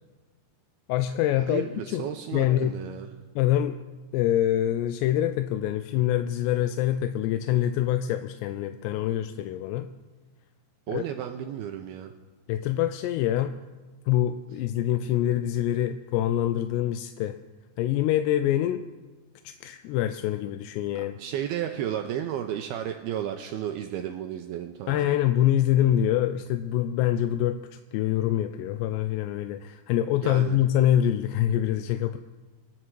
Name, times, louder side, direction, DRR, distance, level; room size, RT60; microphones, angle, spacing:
voice 1, 0.9-2.8 3.4-3.8 4.1-9.9 10.9-11.0 12.5-13.6 14.1-17.4 17.8-18.8 19.4-21.1 24.9-32.2, left 12 dB, 80° left, 9 dB, 2.6 m, -25 dB
voice 2, 1.5-3.1 10.9-12.1 21.2-25.1 30.2-30.6, right 10 dB, 90° right, 5 dB, 2.2 m, -33 dB
26.5 x 10.0 x 4.7 m, 1.3 s
omnidirectional pair, 5.2 m